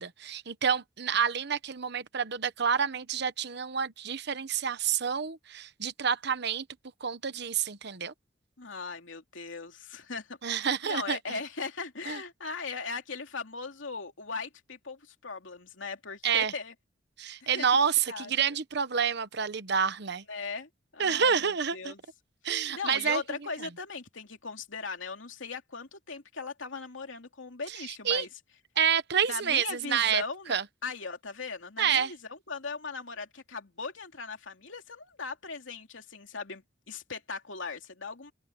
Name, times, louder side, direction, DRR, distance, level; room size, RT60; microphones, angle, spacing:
voice 1, 0.0-6.6 7.0-8.1 10.4-11.4 12.1-12.2 16.2-16.5 17.2-20.2 21.0-21.9 22.4-23.4 27.8-28.2 28.8-30.2 30.5-30.6 31.8-32.1, right 7 dB, 60° right, 1.0 m, -28 dB
voice 2, 8.6-16.7 17.4-17.6 18.1-18.6 20.3-22.0 22.7-28.3 29.3-38.3, left 4 dB, 85° left, 2.8 m, -39 dB
open air
head